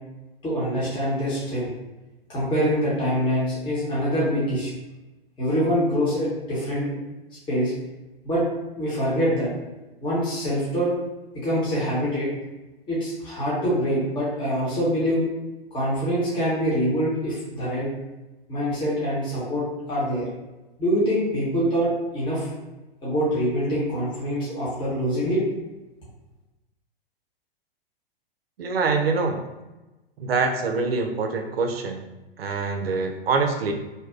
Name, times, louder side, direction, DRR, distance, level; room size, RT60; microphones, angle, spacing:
voice 1, 0.4-1.7 2.3-4.7 5.4-7.0 7.5-7.7 8.2-8.4 8.8-9.5 10.0-10.9 11.3-12.3 12.9-15.2 15.7-17.9 18.5-20.3 20.8-22.5 23.0-25.4, equal, 15° left, -8 dB, 1.0 m, -24 dB
voice 2, 28.6-29.4 30.2-32.0 32.4-33.7, right 4 dB, 80° right, 4 dB, 0.5 m, -24 dB
2.7 x 2.3 x 2.3 m, 1.1 s
figure-of-eight pair, 105°, 29 cm